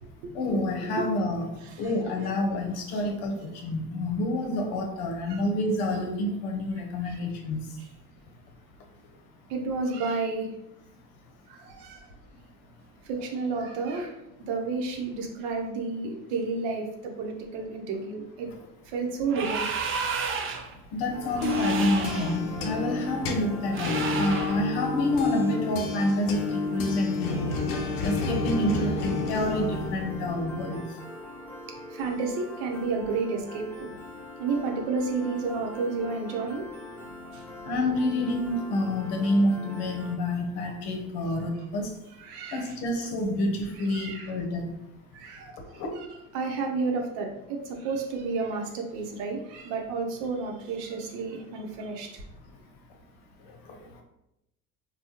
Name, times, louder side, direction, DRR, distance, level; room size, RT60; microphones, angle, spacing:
voice 1, 0.3-1.5 1.8-7.7 20.9-27.5 28.0-30.8 37.7-41.9 42.5-44.7 45.8-45.9 53.7-53.8, left 1 dB, 60° left, 3 dB, 0.8 m, -28 dB
voice 2, 1.6-1.9 5.3-5.4 7.0-7.2 9.5-10.5 11.5-12.1 13.0-14.2 14.5-18.5 18.9-19.7 31.9-33.9 34.4-36.7 37.3-37.4 42.2-42.7 43.8-44.3 45.1-45.8 46.3-52.2, right 4 dB, 65° right, 2 dB, 0.8 m, -31 dB
sound 1, 19.3-20.7 21.4-22.4 23.7-24.6, right 5 dB, 30° right, 0.4 m, -31 dB
sound 2, 21.1-30.7, left 3 dB, 90° left, 0.6 m, -30 dB
Piano, 21.1-40.1, left 1 dB, 5° left, 0.7 m, -43 dB
3.4 x 2.3 x 2.7 m, 0.86 s
hypercardioid pair, 70°, 44 cm